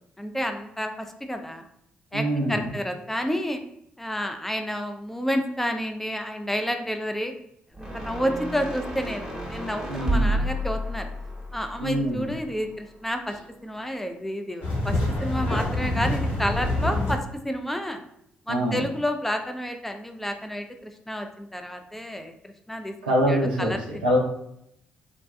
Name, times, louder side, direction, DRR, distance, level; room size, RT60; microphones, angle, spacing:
voice 1, 0.2-1.7 2.1-3.6 4.0-7.3 7.8-11.1 11.5-13.3 13.6-18.0 18.5-22.9 23.3-24.1, equal, 5° left, 6 dB, 0.3 m, -30 dB
voice 2, 2.1-2.7 9.9-10.4 11.8-12.3 15.4-15.5 18.5-18.8 23.0-24.2, equal, 90° right, -4 dB, 0.5 m, -25 dB
sound 1, 7.7-13.0, right 1 dB, 10° right, 0.9 m, -31 dB
sound 2, 14.6-17.1, left 1 dB, 65° left, 0.9 m, -26 dB
2.5 x 2.2 x 2.3 m, 0.75 s
figure-of-eight pair, 45°, 5 cm